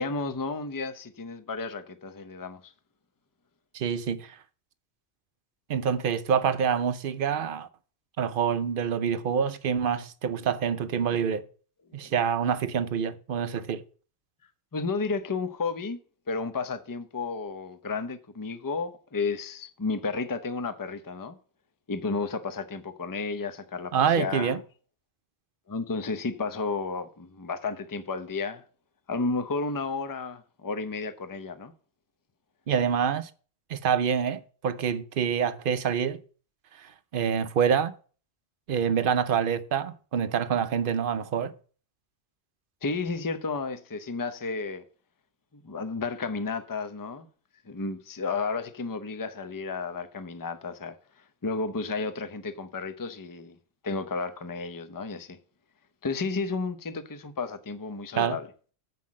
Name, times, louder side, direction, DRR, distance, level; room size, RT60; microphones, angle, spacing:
voice 1, 0.0-2.7 12.0-12.1 14.7-16.0 16.3-21.4 21.9-24.6 25.7-28.6 29.1-31.7 42.8-44.8 45.5-47.3 47.7-51.0 51.4-53.6 53.8-55.4 56.0-58.5, left 4 dB, 20° left, 0.6 m, -32 dB
voice 2, 3.7-4.4 5.7-7.7 8.2-11.4 11.9-13.8 23.9-24.6 32.7-33.3 33.7-36.2 36.8-37.9 38.7-41.5 58.2-58.4, right 7 dB, 55° right, 0.8 m, -26 dB
7.6 x 5.7 x 7.4 m
omnidirectional pair, 1.1 m